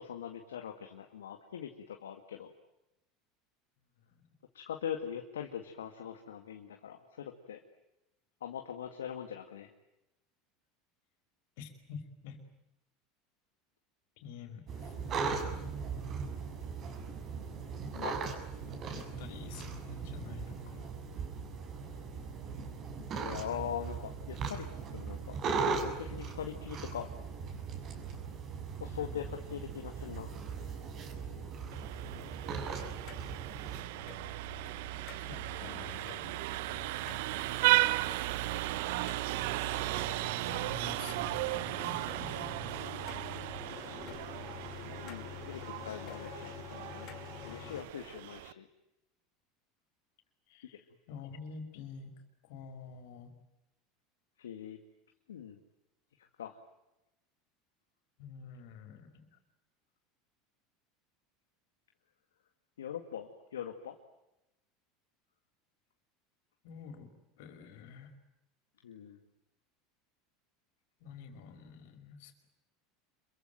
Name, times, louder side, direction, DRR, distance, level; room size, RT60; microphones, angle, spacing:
voice 1, 0.0-2.5 4.5-7.6 8.4-9.7 17.9-18.2 23.1-24.7 24.9-25.4 25.7-27.1 28.8-30.3 45.0-47.1 47.4-48.7 54.4-54.8 55.3-55.6 56.2-56.6 62.8-64.0 68.8-69.2, left 9 dB, 85° left, 4 dB, 2.1 m, -42 dB
voice 2, 11.6-12.4 14.2-14.9 18.6-20.9 29.0-29.4 34.7-34.9 35.2-36.4 39.7-40.0 40.4-42.9 50.5-53.3 58.2-59.4 66.6-68.1 71.0-72.5, left 6 dB, 70° left, 7 dB, 5.3 m, -49 dB
sound 1, 14.7-33.8, right 5 dB, 45° right, 6.8 m, -39 dB
Vehicle horn car horn honking, 31.7-48.5, right 19 dB, 70° right, 1.0 m, -35 dB
sound 2, 33.0-47.8, left 11 dB, 55° left, 2.6 m, -48 dB
27.5 x 23.0 x 9.2 m, 0.91 s
hypercardioid pair, 85°, 0 cm